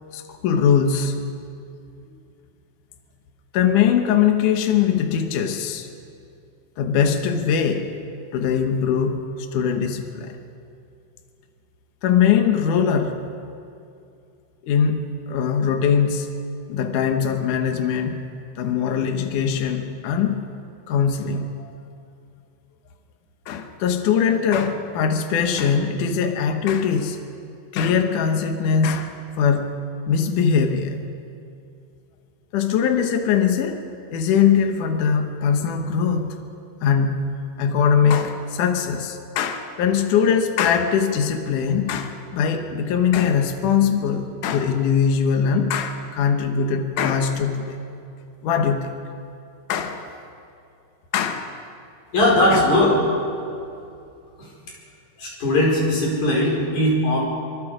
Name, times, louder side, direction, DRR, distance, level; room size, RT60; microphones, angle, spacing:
voice 1, 0.1-1.2 3.5-5.9 6.8-7.9 8.3-10.4 12.0-13.2 14.6-16.3 16.7-18.3 18.6-20.4 20.9-21.7 23.5-27.2 27.7-29.8 30.1-31.0 32.5-36.4 36.8-47.8 48.4-48.9 49.7-50.1 51.1-51.5 52.5-52.6, left 7 dB, 90° left, 6 dB, 1.8 m, -21 dB
voice 2, 52.1-53.0 54.4-54.5 55.2-57.2, left 1 dB, 40° left, -3 dB, 6.1 m, -19 dB
26.0 x 24.0 x 5.1 m, 2.6 s
omnidirectional pair, 5.6 m